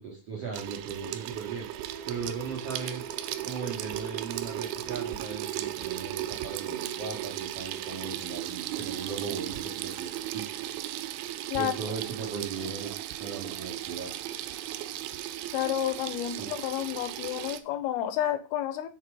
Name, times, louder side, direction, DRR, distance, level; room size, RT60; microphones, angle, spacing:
voice 1, 0.0-3.0 3.4-10.5 11.5-14.1 16.3-16.5, right 5 dB, 60° right, -2 dB, 1.7 m, -38 dB
Water tap faucet / Sink (filling or washing), 0.5-17.6, right 13 dB, 80° right, 2.4 m, -36 dB
Wind instrument woodwind instrument, 1.8-6.0, right 1 dB, 30° right, 1.7 m, -49 dB
voice 2, 15.5-18.9, left 11 dB, 80° left, 11 dB, 2.5 m, -30 dB
7.3 x 4.2 x 4.8 m, 0.33 s
omnidirectional pair, 4.7 m